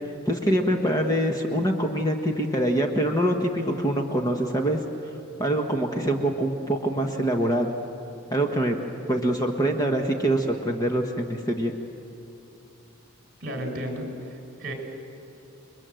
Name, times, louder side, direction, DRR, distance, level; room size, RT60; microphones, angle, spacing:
voice 1, 0.2-5.1 5.4-7.7 8.3-8.8 9.1-11.7, right 1 dB, 15° left, 3 dB, 1.3 m, -24 dB
voice 2, 13.4-14.7, equal, 40° right, 3 dB, 4.8 m, -33 dB
29.5 x 22.0 x 7.8 m, 3.0 s
head